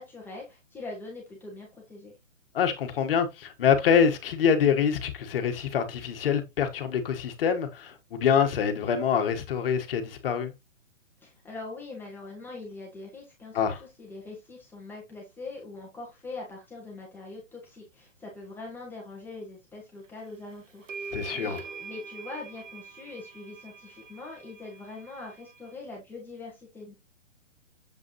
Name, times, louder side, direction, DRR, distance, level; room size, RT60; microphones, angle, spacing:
voice 1, 0.0-2.1 11.2-26.9, left 3 dB, 5° left, 1.5 m, -42 dB
voice 2, 2.5-10.5 13.5-13.8 21.1-21.6, left 7 dB, 45° left, 1.6 m, -25 dB
sound 1, 20.3-20.4 20.9-25.7, right 5 dB, 75° right, 1.4 m, -43 dB
7.6 x 5.1 x 3.1 m
hypercardioid pair, 145°, 38 cm